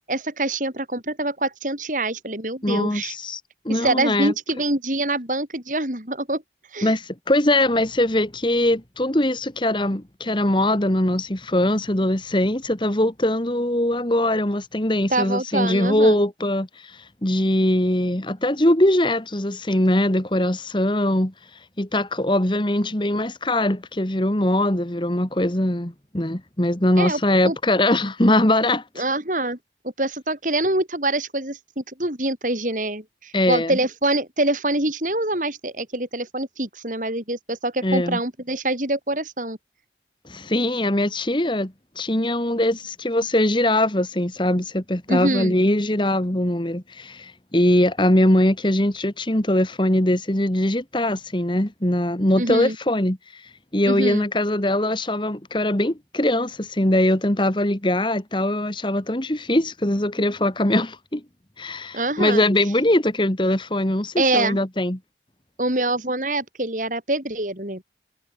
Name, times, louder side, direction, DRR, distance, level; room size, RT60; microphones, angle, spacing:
voice 1, 0.1-3.1 3.7-6.4 6.7-6.9 15.1-16.2 27.0-27.6 29.0-29.6 30.0-39.6 45.1-45.5 52.4-52.8 53.9-54.2 61.9-62.4 64.2-64.6 65.6-67.8, right 2 dB, 45° right, 5.7 m, -25 dB
voice 2, 2.6-3.4 3.7-4.3 6.8-21.3 21.8-28.8 33.3-33.8 37.8-38.2 40.3-61.2 61.6-65.0, left 1 dB, 25° left, 1.9 m, -21 dB
head